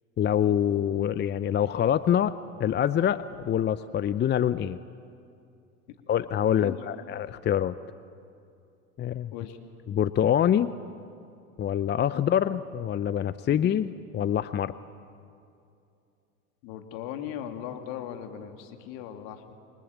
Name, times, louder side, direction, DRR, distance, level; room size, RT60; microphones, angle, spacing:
voice 1, 0.2-2.3 2.6-4.8 6.1-7.7 9.0-9.3 9.9-10.7 11.6-14.7, left 10 dB, 25° left, 15 dB, 0.6 m, -25 dB
voice 2, 16.6-19.5, left 10 dB, 60° left, 6 dB, 2.8 m, -38 dB
28.5 x 23.0 x 8.4 m, 2.5 s
hypercardioid pair, 85°, 43 cm